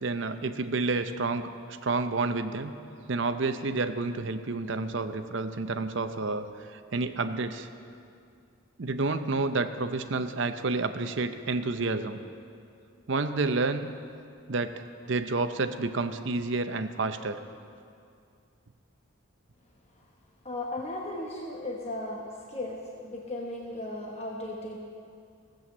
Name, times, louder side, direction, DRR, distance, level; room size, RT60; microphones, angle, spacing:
voice 1, 0.0-1.5 1.8-2.7 3.1-6.5 6.7-7.7 8.8-12.2 13.1-14.0 14.5-17.4, right 3 dB, 60° right, 9 dB, 0.6 m, -29 dB
voice 2, 20.4-24.8, left 1 dB, 30° left, -1 dB, 1.0 m, -36 dB
15.5 x 7.8 x 7.2 m, 2.4 s
head